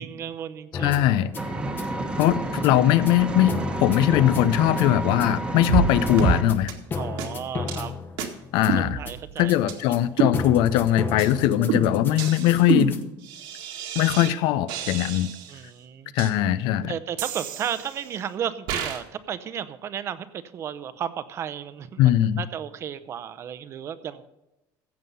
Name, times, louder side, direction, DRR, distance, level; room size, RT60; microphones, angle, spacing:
voice 1, 0.0-0.9 6.9-8.0 9.0-9.5 10.2-10.3 15.5-16.1 16.9-22.1 22.4-24.2, right 9 dB, 35° right, 14 dB, 0.7 m, -33 dB
sound 1, 0.7-13.0, left 5 dB, 25° left, 0.9 m, -34 dB
voice 2, 0.8-1.3 2.2-2.4 2.6-3.5 3.8-6.7 8.5-9.0 9.4-12.9 13.9-15.3 16.1-16.9 22.0-22.4, left 13 dB, 75° left, 15 dB, 0.7 m, -20 dB
Engine, 1.4-6.4, right 1 dB, 10° right, 1.1 m, -30 dB
sound 2, 5.7-5.9 6.2-6.4 6.7-6.8 7.2-7.3 7.7-7.8 8.2-8.3 8.7-9.3 9.7-9.8 10.2-10.8 11.2-11.3 11.7-14.3 14.7-15.6 16.2-16.3 17.2-18.1 18.7-19.0, right 6 dB, 80° right, 2.0 m, -28 dB
15.5 x 7.7 x 5.5 m, 0.95 s
cardioid pair, 175°, 8 cm